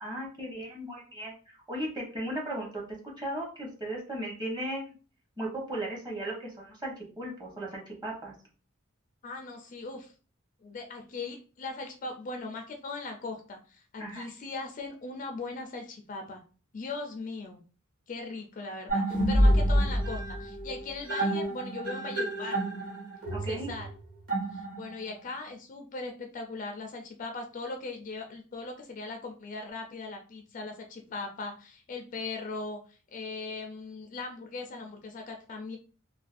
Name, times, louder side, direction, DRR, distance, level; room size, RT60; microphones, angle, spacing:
voice 1, 0.0-2.8 3.2-4.9 5.4-8.3 14.0-14.3 23.3-23.7, right 1 dB, 20° right, -2 dB, 0.8 m, -36 dB
voice 2, 9.2-10.1 10.6-16.4 16.7-17.6 18.1-22.6 23.5-23.9 24.5-35.8, left 3 dB, 40° left, 4 dB, 0.3 m, -39 dB
sound 1, 18.9-25.1, equal, 45° right, 1.1 m, -28 dB
2.4 x 2.2 x 2.4 m, 0.36 s
head